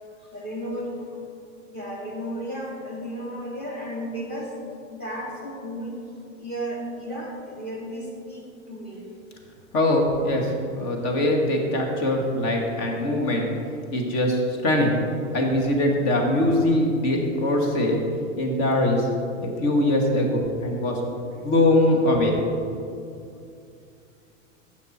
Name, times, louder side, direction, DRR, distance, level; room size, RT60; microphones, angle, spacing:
voice 1, 0.2-1.2 1.7-4.6 4.9-6.0 6.4-9.1, equal, 25° left, -1 dB, 2.5 m, -34 dB
voice 2, 9.7-13.5 13.9-15.0 15.3-18.0 18.4-19.1 19.4-21.0 21.4-22.4, left 1 dB, 45° left, 1 dB, 2.2 m, -22 dB
12.0 x 8.5 x 4.5 m, 2.5 s
hypercardioid pair, 125°, 40 cm